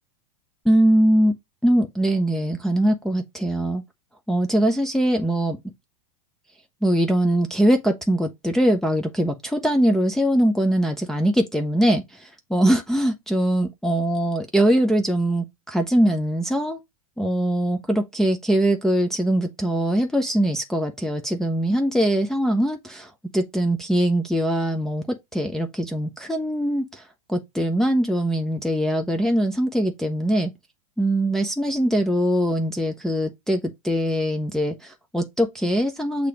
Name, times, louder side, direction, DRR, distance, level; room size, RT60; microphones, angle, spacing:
voice 1, 0.6-1.3 1.6-3.8 4.3-5.6 6.8-16.8 17.2-25.0 25.3-27.0 27.3-30.5 31.0-36.3, right 1 dB, 5° left, 0.7 m, -22 dB
6.6 x 2.9 x 4.9 m
hypercardioid pair, 100°, 18 cm